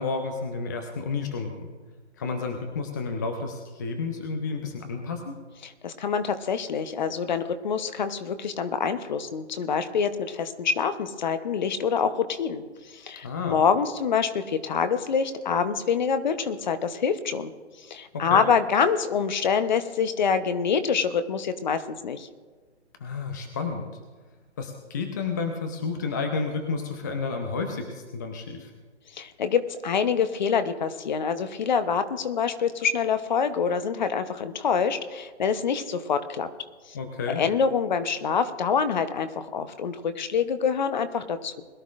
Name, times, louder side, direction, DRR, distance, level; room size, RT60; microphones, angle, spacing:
voice 1, 0.0-1.7 2.2-5.3 13.2-13.6 18.1-18.4 23.0-23.9 24.6-28.7 36.9-37.4, left 4 dB, 15° left, 5 dB, 0.5 m, -31 dB
voice 2, 5.6-12.6 12.9-17.5 17.9-22.3 29.1-36.5 36.9-37.0 37.3-41.6, left 6 dB, 40° left, 10 dB, 0.9 m, -26 dB
21.5 x 12.0 x 2.5 m, 1.4 s
figure-of-eight pair, 145°, 35 cm